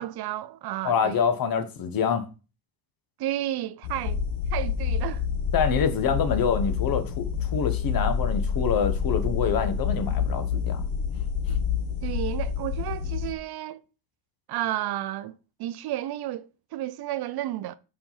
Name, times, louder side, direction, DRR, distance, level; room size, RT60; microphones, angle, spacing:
voice 1, 0.0-1.2 3.2-4.2 4.5-5.2 12.0-13.8 14.5-17.7, right 13 dB, 55° right, 0.6 m, -32 dB
voice 2, 0.8-2.3 5.5-10.8, left 6 dB, 50° left, 1.2 m, -26 dB
sound 1, 3.8-13.3, left 7 dB, 80° left, 1.1 m, -28 dB
5.0 x 4.9 x 5.7 m
cardioid pair, 145°, 45 cm